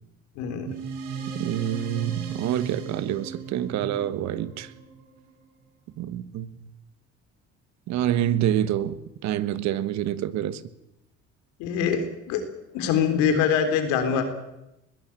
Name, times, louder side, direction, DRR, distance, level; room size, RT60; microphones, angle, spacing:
voice 1, 0.4-0.7 11.6-12.4 12.7-14.2, left 7 dB, 90° left, 3.7 m, -24 dB
sound 1, 0.7-5.5, right 5 dB, 85° right, 4.5 m, -37 dB
voice 2, 1.3-4.7 6.0-6.5 7.9-10.6, right 11 dB, 70° right, 1.3 m, -27 dB
21.0 x 16.5 x 8.8 m
cardioid pair, 95°, 29 cm